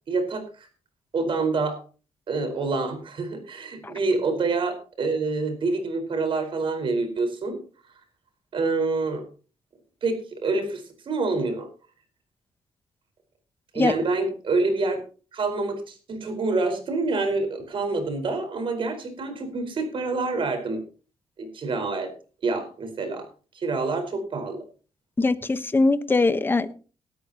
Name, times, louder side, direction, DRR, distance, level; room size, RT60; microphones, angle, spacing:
voice 1, 0.1-0.7 1.1-1.8 2.3-7.6 8.5-9.2 10.0-11.7 13.7-15.0 15.3-20.8 21.4-22.1 22.4-23.3 23.5-24.6, right 3 dB, 55° right, 5 dB, 4.8 m, -27 dB
voice 2, 25.2-26.7, left 3 dB, 20° left, 11 dB, 1.1 m, -22 dB
19.0 x 13.0 x 2.9 m, 0.37 s
cardioid pair, 120°, 11 cm